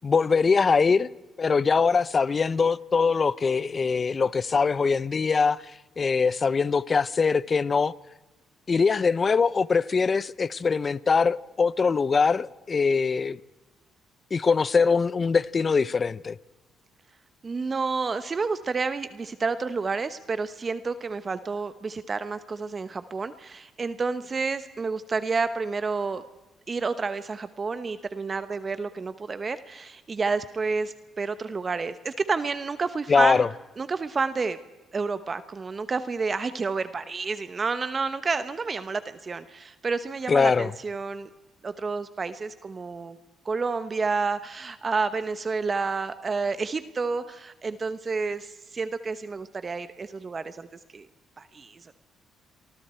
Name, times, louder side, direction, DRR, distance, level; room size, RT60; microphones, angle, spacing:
voice 1, 0.0-1.1 1.4-5.6 6.0-7.9 8.7-13.4 14.3-16.4 33.1-33.5 40.3-40.7, left 5 dB, 35° left, 0.7 m, -22 dB
voice 2, 17.4-26.2 26.7-33.5 33.8-34.6 34.9-41.3 41.6-43.2 43.4-50.7 50.9-51.1 51.4-51.9, right 4 dB, 35° right, 1.1 m, -30 dB
28.5 x 24.0 x 4.5 m
cardioid pair, 90°, 0 cm